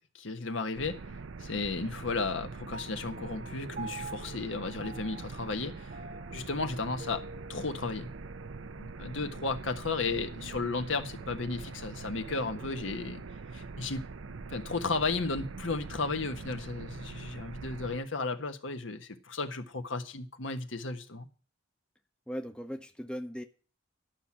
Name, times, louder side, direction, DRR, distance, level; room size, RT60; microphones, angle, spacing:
voice 1, 0.1-1.0 1.4-5.9 6.3-7.2 7.5-8.1 8.8-13.2 13.5-14.0 14.5-21.3, left 3 dB, 75° left, 1.4 m, -34 dB
sound 1, 0.7-18.0, right 4 dB, 90° right, 0.6 m, -43 dB
Piano, 2.7-9.4, right 3 dB, 45° right, 0.9 m, -48 dB
voice 2, 22.3-23.4, equal, 5° left, 0.7 m, -38 dB
12.0 x 6.0 x 8.6 m
head